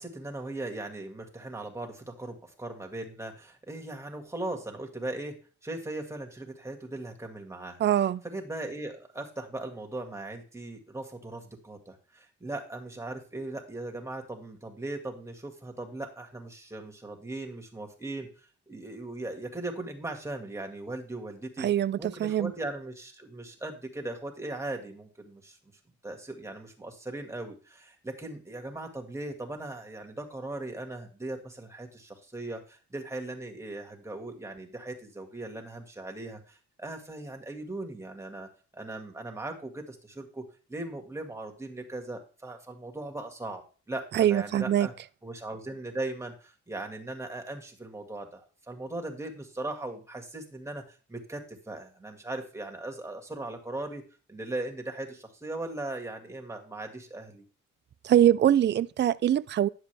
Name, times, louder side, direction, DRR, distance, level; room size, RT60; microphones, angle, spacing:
voice 1, 0.0-5.4 5.6-7.8 8.2-21.7 22.0-25.6 26.0-40.4 40.7-43.6 43.9-44.9 45.2-54.0 54.3-57.4, right 2 dB, 10° right, 1.9 m, -38 dB
voice 2, 7.8-8.2 21.6-22.5 44.1-44.9 58.0-59.7, right 11 dB, 35° right, 0.4 m, -23 dB
10.5 x 7.0 x 3.4 m
cardioid pair, 90°, 30 cm